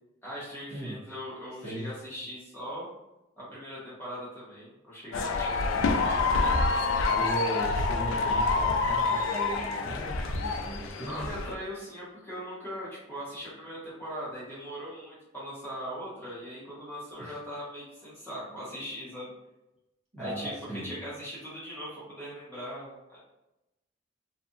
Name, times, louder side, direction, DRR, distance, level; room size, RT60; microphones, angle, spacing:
voice 1, 0.2-2.9 3.4-5.9 11.0-19.3 20.2-23.2, equal, 10° left, -9 dB, 0.9 m, -40 dB
sound 1, 5.1-11.5, left 3 dB, 80° left, 0.3 m, -27 dB
voice 2, 7.0-11.4 17.2-17.3 20.1-20.9, right 1 dB, 35° right, -8 dB, 0.8 m, -37 dB
2.7 x 2.4 x 2.4 m, 0.94 s
head